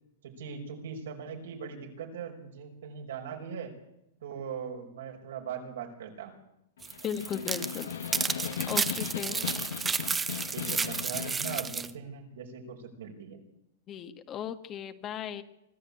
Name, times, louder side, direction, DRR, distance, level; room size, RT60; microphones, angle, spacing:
voice 1, 0.2-3.7 4.2-6.4 9.3-9.9 10.5-13.4, right 7 dB, 80° right, 2 dB, 5.5 m, -40 dB
Snare drum, 6.8-11.8, left 8 dB, 85° left, 1.5 m, -38 dB
sound 1, 6.8-11.9, right 5 dB, 15° right, 0.8 m, -32 dB
voice 2, 7.0-7.9 8.6-9.4 13.9-15.4, left 8 dB, 30° left, 9 dB, 1.5 m, -36 dB
24.5 x 13.5 x 8.7 m, 0.84 s
hypercardioid pair, 135°, 0 cm